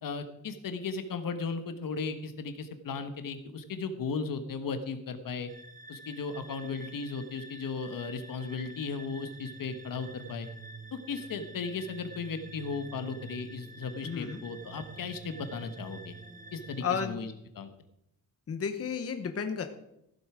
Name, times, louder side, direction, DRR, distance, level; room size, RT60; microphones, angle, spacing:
voice 1, 0.0-5.5 5.9-10.5 10.9-16.1 16.5-17.7, left 4 dB, 80° left, 9 dB, 1.3 m, -36 dB
sound 1, 5.5-17.1, right 3 dB, 25° right, 0.9 m, -48 dB
voice 2, 14.0-14.4 16.8-17.2 18.5-19.7, left 6 dB, 45° left, 7 dB, 1.0 m, -32 dB
15.0 x 7.9 x 4.9 m, 0.81 s
wide cardioid pair, 150°, 33 cm